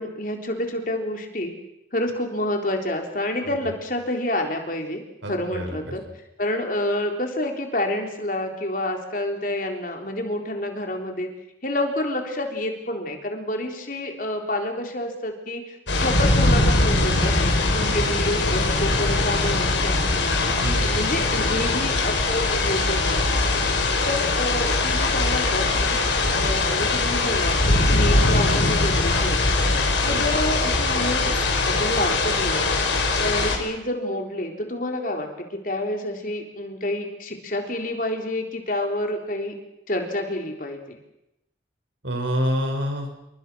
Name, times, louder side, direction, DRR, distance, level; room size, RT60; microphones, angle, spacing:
voice 1, 0.0-1.5 1.9-5.0 5.3-6.0 6.4-11.3 11.6-17.3 17.7-20.2 21.0-23.5 24.1-29.7 30.0-31.3 31.7-32.8 33.2-39.5 39.9-41.0, left 1 dB, 45° left, 3 dB, 3.7 m, -28 dB
voice 2, 5.2-6.0 20.4-21.0 30.0-30.2 42.0-43.1, equal, 85° right, 4 dB, 6.0 m, -28 dB
sound 1, 15.9-33.6, left 2 dB, 80° left, 5.2 m, -21 dB
28.5 x 23.5 x 6.3 m, 0.89 s
head